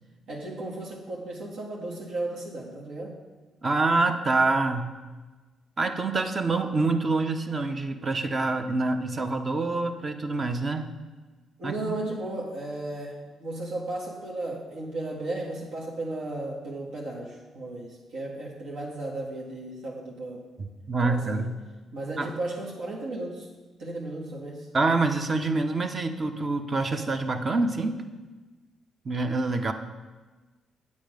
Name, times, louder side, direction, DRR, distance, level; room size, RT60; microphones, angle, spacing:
voice 1, 0.3-3.2 11.6-20.4 21.0-21.5 21.9-23.5 23.8-24.7, right 2 dB, 80° right, -4 dB, 1.8 m, -35 dB
voice 2, 3.6-4.9 5.8-10.9 11.6-12.0 20.9-21.6 22.2-22.3 24.7-28.0 29.0-29.7, right 3 dB, 35° right, 7 dB, 0.9 m, -26 dB
8.6 x 8.4 x 5.1 m, 1.3 s
cardioid pair, 90°, 0 cm